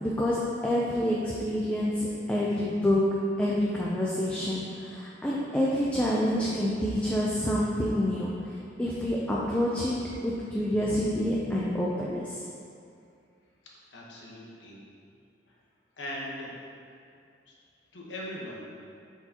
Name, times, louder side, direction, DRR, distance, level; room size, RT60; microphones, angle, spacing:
voice 1, 0.0-3.0 3.4-10.0 10.2-12.4, left 1 dB, 5° left, -5 dB, 0.4 m, -28 dB
voice 2, 13.9-14.8 16.0-16.5 17.5-17.6 17.9-18.6, left 1 dB, 85° left, -4 dB, 1.2 m, -39 dB
7.5 x 4.7 x 2.9 m, 2.4 s
head